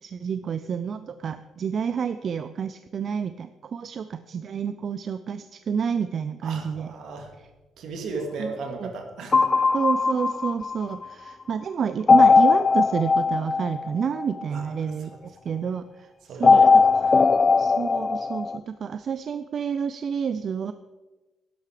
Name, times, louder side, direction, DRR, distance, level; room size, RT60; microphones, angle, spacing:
voice 1, 0.0-6.9 8.4-8.5 8.8-8.9 9.7-16.1 16.4-16.6 17.1-17.2 17.6-20.7, right 7 dB, 55° right, 12 dB, 0.5 m, -29 dB
voice 2, 6.4-7.3 7.8-9.6 14.5-15.1 16.2-17.3, right 3 dB, 75° right, 3 dB, 2.4 m, -36 dB
sound 1, 9.3-11.0 12.1-14.6 16.4-18.6, left 4 dB, 35° left, 0.4 m, -19 dB
11.5 x 10.5 x 5.0 m, 1.1 s
cardioid pair, 90°, 0 cm